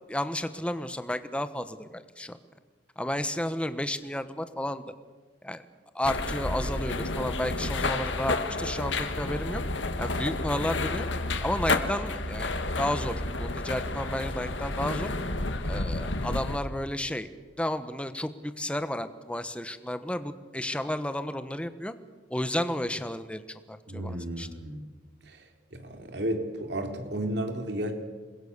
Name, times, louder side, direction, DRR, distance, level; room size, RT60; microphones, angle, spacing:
voice 1, 0.1-2.4 3.0-4.8 5.4-5.6 5.9-9.6 10.0-11.1 11.4-15.1 15.6-17.3 17.6-21.9 22.3-23.4 23.7-24.5, left 1 dB, 5° left, 11 dB, 1.2 m, -32 dB
sound 1, 6.0-16.6, left 2 dB, 85° left, 1.8 m, -30 dB
voice 2, 23.9-24.8 25.2-27.9, right 1 dB, 65° right, 5 dB, 3.3 m, -33 dB
28.0 x 21.5 x 6.7 m, 1.4 s
head